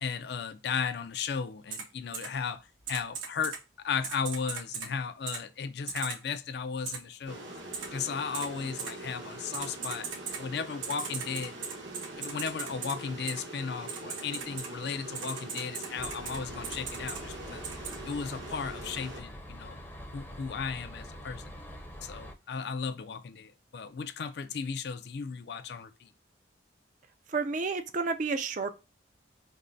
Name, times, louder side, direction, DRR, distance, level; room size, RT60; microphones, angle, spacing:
voice 1, 0.0-3.6 3.8-7.4 7.9-10.1 10.4-11.5 12.2-17.6 18.1-19.8 20.1-21.4 22.0-26.1, left 6 dB, 55° left, 0.4 m, -35 dB
Typing, 1.7-1.8 2.1-2.3 2.9-3.6 4.0-4.9 5.3-5.4 5.9-6.2 6.8-7.0 7.7-7.8 8.3-8.5 8.8-8.9 9.5-10.4 10.8-12.9 13.3-13.4 13.9-14.7 15.1-16.4 16.6-17.2 17.6-17.9, right 6 dB, 90° right, 1.5 m, -37 dB
sound 1, 7.2-19.2, right 2 dB, 70° right, 1.1 m, -43 dB
sound 2, 16.0-22.3, equal, 10° left, 0.6 m, -45 dB
voice 2, 27.3-28.7, right 4 dB, 40° right, 0.4 m, -30 dB
5.2 x 2.1 x 2.6 m
head